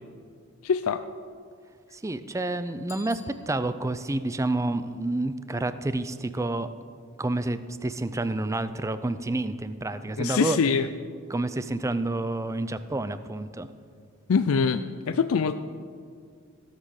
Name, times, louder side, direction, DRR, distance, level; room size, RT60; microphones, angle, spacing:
voice 1, 0.6-1.0 10.2-10.9 14.3-15.6, left 5 dB, 75° left, 9 dB, 0.4 m, -24 dB
voice 2, 1.9-6.7 7.2-10.6 11.3-13.7, right 2 dB, 15° right, 12 dB, 0.4 m, -29 dB
Bicycle bell, 2.8-4.0, left 3 dB, 30° left, 2.0 m, -50 dB
16.0 x 7.5 x 6.5 m, 2.1 s
head